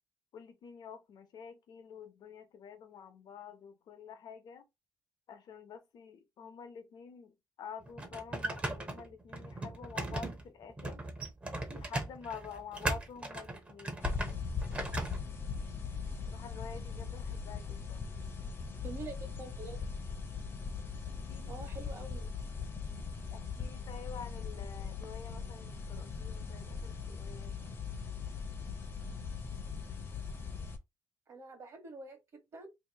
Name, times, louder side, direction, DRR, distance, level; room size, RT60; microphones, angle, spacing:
voice 1, 0.3-4.7 5.3-11.0 11.7-14.2 14.7-15.4 16.3-18.2 21.3-21.5 23.3-27.6, left 7 dB, 65° left, 0.9 m, -48 dB
sound 1, 7.8-15.2, right 2 dB, 15° right, 0.7 m, -38 dB
sound 2, 14.0-30.8, left 5 dB, 30° left, 0.7 m, -40 dB
voice 2, 18.8-19.8 21.5-22.3 31.3-32.7, right 3 dB, 40° right, 1.1 m, -46 dB
2.9 x 2.7 x 4.0 m
wide cardioid pair, 170°, 7 cm